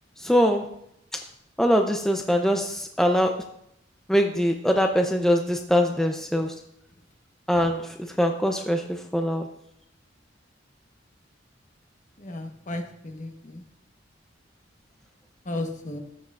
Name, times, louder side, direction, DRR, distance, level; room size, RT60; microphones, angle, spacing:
voice 1, 0.2-0.6 1.6-3.3 4.1-6.5 7.5-9.4, equal, 5° left, 3 dB, 0.5 m, -23 dB
voice 2, 12.2-13.6 15.5-16.0, left 2 dB, 40° left, 5 dB, 1.1 m, -34 dB
14.0 x 8.9 x 2.4 m, 0.75 s
head